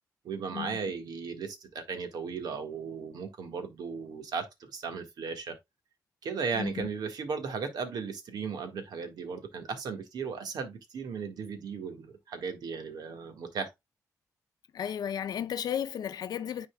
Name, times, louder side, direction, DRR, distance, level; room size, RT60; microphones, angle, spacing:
voice 1, 0.2-4.5 4.7-5.6 6.2-13.7, right 5 dB, 85° right, 1.7 m, -36 dB
voice 2, 6.5-6.9 14.7-16.7, left 9 dB, 75° left, 0.6 m, -34 dB
9.8 x 4.2 x 2.3 m
cardioid pair, 115°, 7 cm